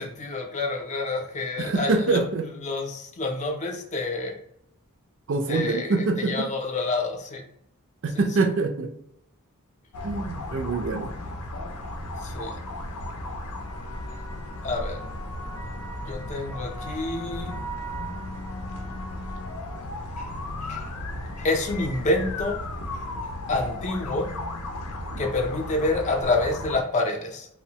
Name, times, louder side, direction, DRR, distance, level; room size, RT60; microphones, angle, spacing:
voice 1, 0.0-4.4 5.5-7.4 8.1-8.3 12.2-12.6 14.6-15.1 16.0-17.5 20.2-20.3 20.6-20.9 21.4-22.6 23.5-24.3 25.2-27.5, left 2 dB, 35° left, 2 dB, 0.4 m, -28 dB
voice 2, 1.6-2.5 5.3-6.5 8.0-8.9 10.0-11.1, right 3 dB, 60° right, 4 dB, 0.4 m, -25 dB
sound 1, 9.9-26.8, left 1 dB, 90° left, 0.5 m, -35 dB
2.9 x 2.1 x 2.7 m, 0.76 s
head